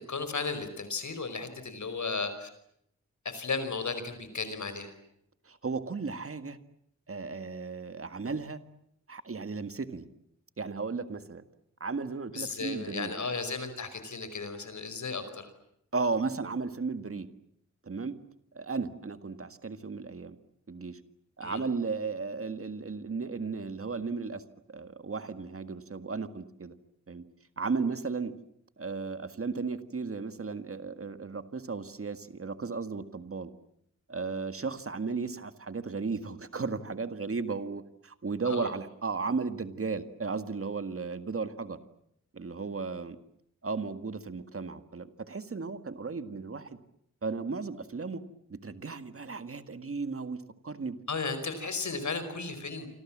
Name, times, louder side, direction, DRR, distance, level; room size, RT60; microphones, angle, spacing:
voice 1, 0.0-2.5 3.2-4.9 12.3-15.5 21.4-21.6 38.4-38.7 51.1-52.9, left 4 dB, 75° left, 10 dB, 5.1 m, -35 dB
voice 2, 5.5-6.6 7.1-8.6 9.1-10.1 10.6-11.4 11.8-13.1 15.9-17.3 17.8-18.2 18.5-20.4 20.7-21.0 21.4-24.4 24.7-26.7 27.1-27.2 27.6-28.3 28.8-33.5 34.1-41.8 42.3-43.2 43.6-46.8 47.2-48.2 48.5-51.0, right 4 dB, 50° right, 10 dB, 1.9 m, -35 dB
28.0 x 25.5 x 7.5 m, 0.74 s
wide cardioid pair, 120°, 29 cm